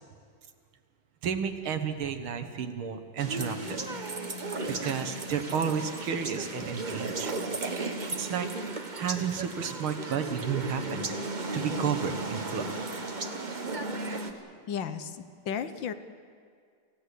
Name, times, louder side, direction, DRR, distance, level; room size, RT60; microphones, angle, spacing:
voice 1, 1.2-3.8 4.7-7.3 8.2-8.5 9.0-11.0 11.5-12.7, right 7 dB, 70° right, 8 dB, 2.2 m, -32 dB
sound 1, 3.2-14.3, right 3 dB, 25° right, 1.2 m, -35 dB
voice 2, 14.7-15.9, left 7 dB, 65° left, 11 dB, 1.6 m, -34 dB
28.0 x 16.0 x 8.3 m, 2.1 s
omnidirectional pair, 2.4 m